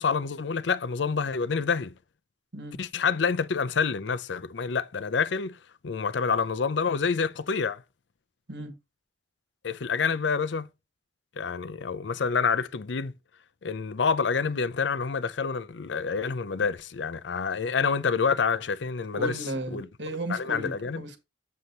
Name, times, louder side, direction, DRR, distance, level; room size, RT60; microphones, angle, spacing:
voice 1, 0.0-1.9 2.8-5.6 5.8-7.8 9.6-10.7 11.4-13.1 13.6-19.4 19.7-19.9 20.3-21.0, left 5 dB, 75° left, 0.5 m, -27 dB
voice 2, 19.1-21.2, right 1 dB, 75° right, 1.6 m, -35 dB
7.6 x 6.6 x 2.8 m
head